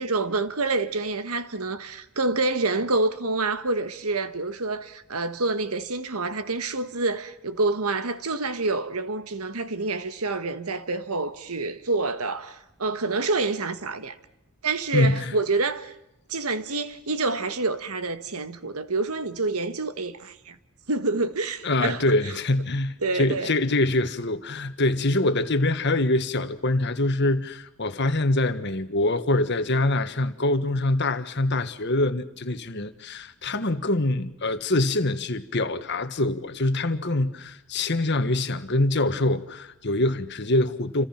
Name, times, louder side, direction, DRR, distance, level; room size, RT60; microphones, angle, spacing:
voice 1, 0.0-14.2 14.6-15.9 16.3-20.5 20.9-22.1 23.0-23.5, right 3 dB, 85° right, 1.6 m, -27 dB
voice 2, 14.9-15.3 21.6-41.1, left 2 dB, 50° left, 1.5 m, -24 dB
29.0 x 26.0 x 5.9 m
head